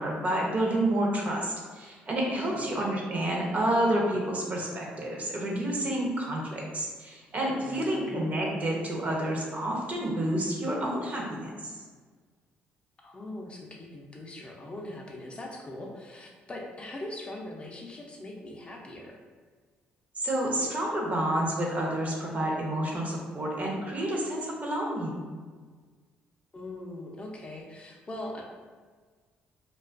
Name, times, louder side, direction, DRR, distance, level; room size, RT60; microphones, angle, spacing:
voice 1, 0.0-11.7 20.2-25.3, right 1 dB, 40° right, -2 dB, 0.6 m, -29 dB
voice 2, 2.3-2.7 7.5-8.2 13.0-19.2 26.5-28.4, left 1 dB, 30° left, -1 dB, 0.4 m, -41 dB
2.4 x 2.3 x 2.4 m, 1.5 s
cardioid pair, 80°, 4 cm